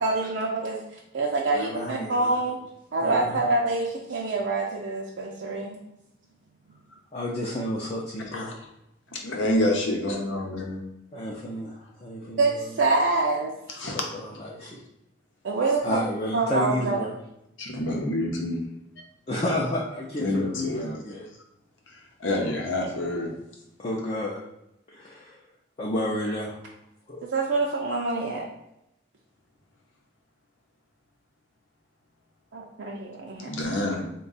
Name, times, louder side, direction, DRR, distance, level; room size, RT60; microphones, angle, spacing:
voice 1, 0.0-0.8 1.1-2.6 2.9-5.8 12.4-13.5 15.4-16.0 16.3-17.0 27.2-28.4 32.5-33.7, right 3 dB, 70° right, -2 dB, 0.5 m, -26 dB
voice 2, 1.5-2.4 3.0-3.5 7.1-8.5 11.1-12.7 13.9-14.8 15.8-17.1 19.3-21.3 22.4-22.5 23.8-24.4 24.9-25.4 25.8-26.6 27.1-27.2, left 1 dB, 30° left, -4 dB, 0.4 m, -31 dB
voice 3, 8.3-8.6 9.1-10.8 13.7-14.0 17.6-18.6 20.2-20.9 22.2-23.3 33.4-34.0, left 1 dB, 80° left, 1 dB, 0.8 m, -27 dB
3.5 x 2.3 x 4.0 m, 0.84 s
head